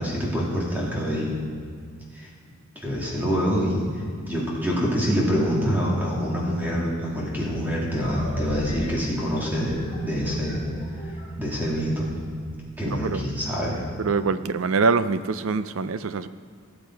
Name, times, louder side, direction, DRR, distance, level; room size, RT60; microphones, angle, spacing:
voice 1, 0.0-1.3 2.8-3.8 4.3-10.6 11.4-12.0 12.8-13.8, equal, 10° right, -5 dB, 2.4 m, -25 dB
sound 1, 8.0-12.7, right 1 dB, 30° left, 3.5 m, -34 dB
voice 2, 12.8-13.2 14.0-16.3, right 4 dB, 65° right, 13 dB, 0.5 m, -24 dB
17.0 x 7.4 x 4.6 m, 2.2 s
head